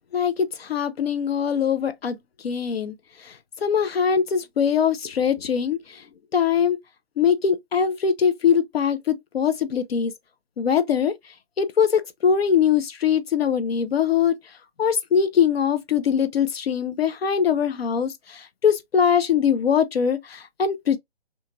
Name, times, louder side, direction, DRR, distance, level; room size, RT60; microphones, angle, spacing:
voice 1, 0.1-2.2 2.4-2.9 3.2-3.3 3.6-6.0 6.3-6.8 7.2-10.1 10.6-11.1 11.6-14.4 14.8-21.0, left 7 dB, 70° left, 0.6 m, -22 dB
2.8 x 2.4 x 2.5 m
figure-of-eight pair, 150°, 32 cm